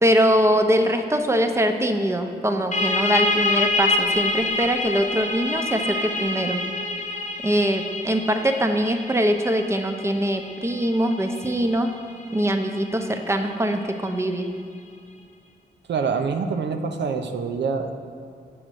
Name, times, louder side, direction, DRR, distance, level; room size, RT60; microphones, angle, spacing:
voice 1, 0.0-6.6 7.4-11.9 12.3-14.5, equal, 15° right, 6 dB, 0.7 m, -22 dB
sound 1, 2.7-14.1, left 2 dB, 40° left, 0.8 m, -27 dB
voice 2, 15.9-17.9, right 5 dB, 80° right, 6 dB, 0.6 m, -25 dB
7.4 x 3.9 x 6.3 m, 2.4 s
cardioid pair, 55°, 18 cm